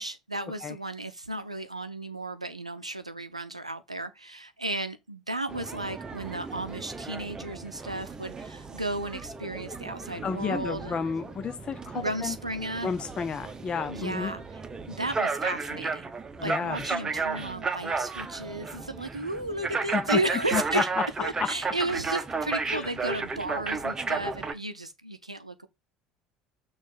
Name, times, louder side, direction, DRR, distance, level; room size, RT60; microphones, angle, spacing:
voice 1, 0.0-11.0 11.9-12.9 13.9-14.4 14.9-16.1 16.4-20.9 21.2-25.7, right 2 dB, 90° right, 0.6 m, -34 dB
sound 1, 5.5-24.5, right 4 dB, 20° right, 0.9 m, -34 dB
voice 2, 10.2-12.4 12.8-14.3 16.4-17.0 17.3-17.5 19.9-20.2 20.5-21.1 21.4-21.5 22.7-22.9, left 6 dB, 30° left, 0.5 m, -31 dB
6.3 x 3.1 x 5.8 m
figure-of-eight pair, 65°, 3 cm